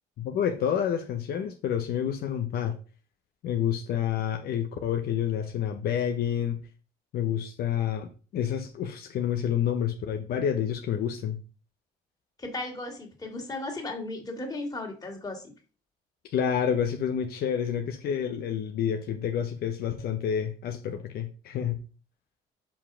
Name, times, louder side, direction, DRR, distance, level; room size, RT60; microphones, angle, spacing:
voice 1, 0.2-2.8 3.4-6.6 7.1-11.4 16.2-21.8, left 9 dB, 65° left, 0.9 m, -29 dB
voice 2, 12.4-15.5, left 2 dB, 20° left, 2.5 m, -35 dB
5.4 x 5.0 x 6.1 m
cardioid pair, 110°, 17 cm